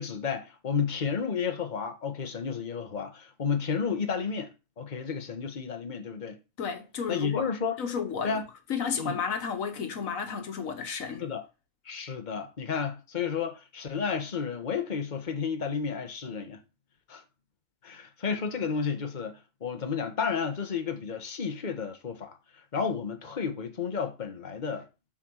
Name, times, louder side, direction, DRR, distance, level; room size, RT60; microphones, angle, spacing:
voice 1, 0.0-6.4 7.1-7.8 8.2-8.4 9.0-9.2 11.2-11.4 11.8-16.6 17.1-17.2 17.8-24.9, left 6 dB, 35° left, 1.3 m, -32 dB
voice 2, 6.6-7.5 7.8-8.4 8.7-11.3, left 6 dB, 85° left, 1.6 m, -32 dB
7.8 x 4.5 x 6.4 m
omnidirectional pair, 1.4 m